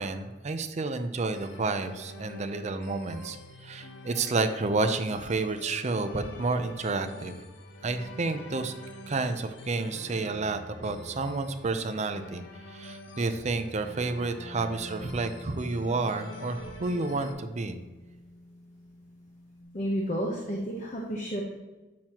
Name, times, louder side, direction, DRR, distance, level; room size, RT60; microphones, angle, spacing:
voice 1, 0.0-3.4 3.6-7.3 7.8-8.7 9.1-12.4 12.7-17.8, right 3 dB, 40° right, 8 dB, 0.5 m, -30 dB
sound 1, 1.3-17.3, left 1 dB, 70° left, 0.8 m, -45 dB
sound 2, 14.2-19.6, left 1 dB, 20° left, 1.3 m, -50 dB
voice 2, 19.7-21.4, equal, 40° left, -1 dB, 0.9 m, -31 dB
8.8 x 6.0 x 2.9 m, 1.2 s
head